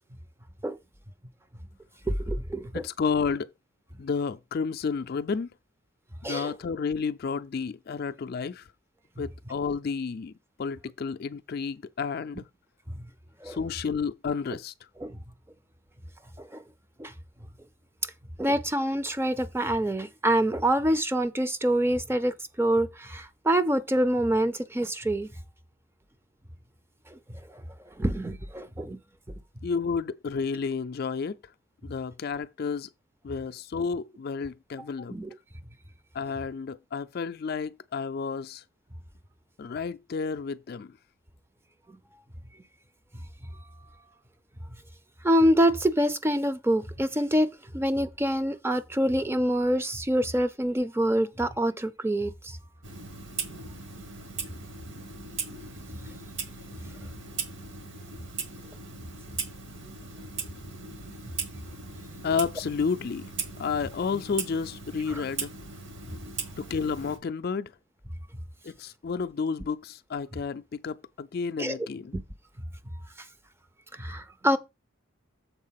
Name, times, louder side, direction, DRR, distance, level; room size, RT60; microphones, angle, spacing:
voice 1, 2.1-2.7 6.2-6.5 13.0-13.1 13.4-13.6 15.0-15.2 16.5-16.6 17.0-17.1 18.4-25.3 27.1-27.2 28.0-29.0 35.1-35.3 45.2-47.5 47.7-52.6 65.1-65.2 71.6-71.8 74.0-74.6, right 1 dB, 10° right, 0.5 m, -26 dB
voice 2, 2.7-3.5 4.0-5.5 6.2-8.7 9.2-10.3 10.6-12.4 13.4-14.7 29.6-31.4 31.8-32.9 33.2-35.2 36.1-38.6 39.6-41.0 62.2-63.3 63.6-65.5 66.6-67.7 68.6-72.1, left 5 dB, 45° left, 0.4 m, -31 dB
Clock, 52.8-67.2, right 5 dB, 60° right, 1.5 m, -39 dB
7.2 x 4.2 x 5.7 m
head